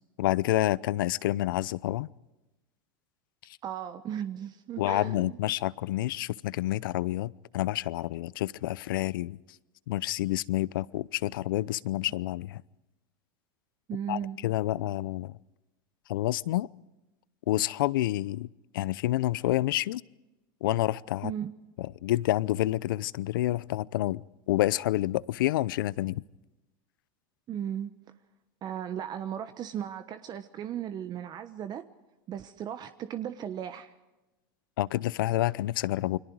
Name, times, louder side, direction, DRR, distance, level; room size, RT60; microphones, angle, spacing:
voice 1, 0.2-2.1 4.8-9.4 9.9-12.6 14.1-15.3 16.1-16.7 17.5-18.5 18.7-20.0 20.6-21.3 21.8-26.2 34.8-36.2, left 15 dB, 75° left, 0.7 m, -28 dB
voice 2, 3.6-5.3 13.9-14.4 21.2-21.5 27.5-27.9 28.6-31.8 32.3-33.9, right 9 dB, 40° right, 1.2 m, -36 dB
29.0 x 23.5 x 4.8 m
hypercardioid pair, 105°, 11 cm